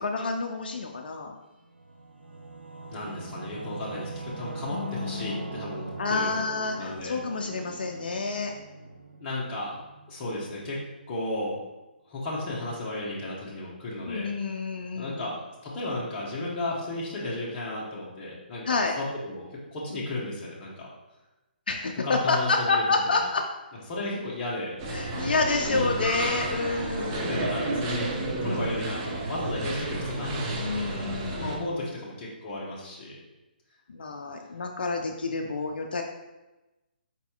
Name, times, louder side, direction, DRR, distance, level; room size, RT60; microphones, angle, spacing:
voice 1, 0.0-1.4 4.7-5.5 6.0-8.5 14.1-15.2 18.6-19.0 21.7-23.4 24.9-27.5 30.6-31.7 33.9-36.0, left 4 dB, 65° left, 2 dB, 0.4 m, -29 dB
Singing / Musical instrument, 1.6-10.8, right 3 dB, 85° right, 0.5 m, -41 dB
voice 2, 2.9-6.3 6.8-7.2 9.2-9.8 10.1-10.8 11.1-11.6 12.0-14.3 14.9-20.9 22.0-23.1 23.9-24.8 25.1-25.4 25.6-25.8 27.0-28.1 28.4-30.9 31.4-33.2, left 2 dB, 25° left, -6 dB, 0.9 m, -34 dB
sound 1, 24.8-31.6, right 2 dB, 30° right, 0.6 m, -31 dB
4.4 x 4.1 x 2.3 m, 1.0 s
figure-of-eight pair, 140°, 6 cm